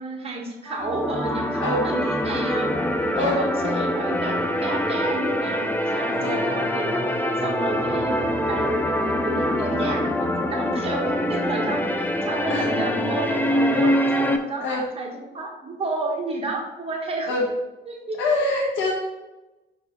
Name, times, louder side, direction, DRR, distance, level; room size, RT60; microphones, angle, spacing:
voice 1, 0.0-2.9 3.1-4.3 4.6-6.9 7.4-17.3 17.9-18.2, right 2 dB, 30° right, -1 dB, 1.7 m, -31 dB
sound 1, 0.7-14.4, left 1 dB, 10° left, 0.6 m, -24 dB
voice 2, 18.2-18.9, left 2 dB, 75° left, -2 dB, 1.2 m, -24 dB
5.5 x 4.5 x 4.0 m, 1.1 s
cardioid pair, 90°, 20 cm